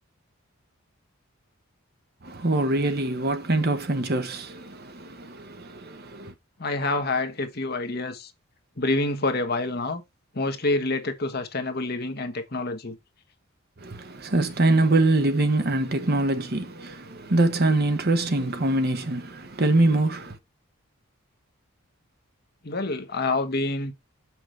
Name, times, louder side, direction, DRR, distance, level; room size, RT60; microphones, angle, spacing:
voice 1, 2.2-6.3 13.8-20.4, right 2 dB, 45° right, 0.9 m, -24 dB
voice 2, 6.6-8.3 8.8-10.0 10.3-13.0 22.6-23.9, left 2 dB, 45° left, 1.2 m, -27 dB
6.3 x 6.0 x 3.2 m
head